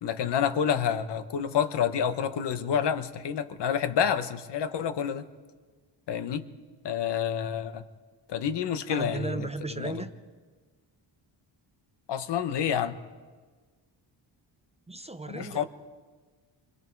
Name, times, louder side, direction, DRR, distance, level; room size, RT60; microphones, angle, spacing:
voice 1, 0.0-5.3 6.1-6.5 6.8-7.8 8.3-9.5 9.8-10.0 12.1-13.0 15.3-15.6, left 8 dB, 65° left, 11 dB, 1.1 m, -28 dB
voice 2, 8.9-10.1 14.9-15.6, right 3 dB, 15° right, 9 dB, 0.6 m, -35 dB
29.0 x 24.5 x 4.7 m, 1.4 s
wide cardioid pair, 180°, 44 cm